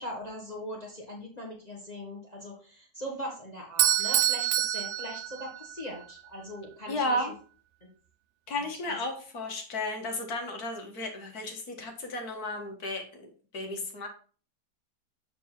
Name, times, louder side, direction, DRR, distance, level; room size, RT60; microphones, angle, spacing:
voice 1, 0.0-7.3 7.8-7.9 8.8-9.0, equal, 25° left, -1 dB, 1.5 m, -40 dB
Bell / Doorbell, 3.8-5.9, right 11 dB, 85° right, 0.6 m, -26 dB
voice 2, 6.9-7.3 8.5-13.3 13.5-14.1, left 1 dB, 65° left, 3 dB, 1.9 m, -33 dB
7.5 x 4.4 x 4.3 m, 0.40 s
omnidirectional pair, 1.8 m